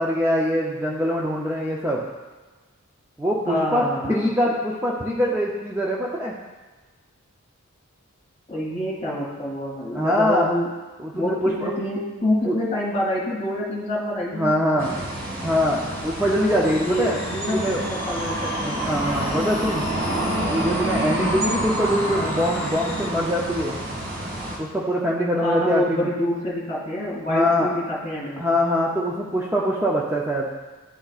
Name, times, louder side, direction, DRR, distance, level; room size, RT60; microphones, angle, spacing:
voice 1, 0.0-2.0 3.2-6.4 9.9-10.5 11.0-11.7 12.5-12.6 14.3-14.9 15.4-17.2 17.5-17.8 18.6-19.9 20.5-23.8 24.6-26.1 27.3-27.7 28.4-30.5, equal, 10° right, -4 dB, 0.5 m, -23 dB
voice 2, 3.4-4.2 8.5-10.7 11.1-14.9 16.6-18.9 22.1-22.3 25.4-28.4, left 1 dB, 35° left, -4 dB, 2.0 m, -27 dB
sound 1, 14.8-24.6, right 1 dB, 60° right, 1.8 m, -28 dB
sound 2, 16.6-23.1, left 5 dB, 60° left, 0.6 m, -39 dB
11.0 x 4.0 x 2.4 m, 1.3 s
head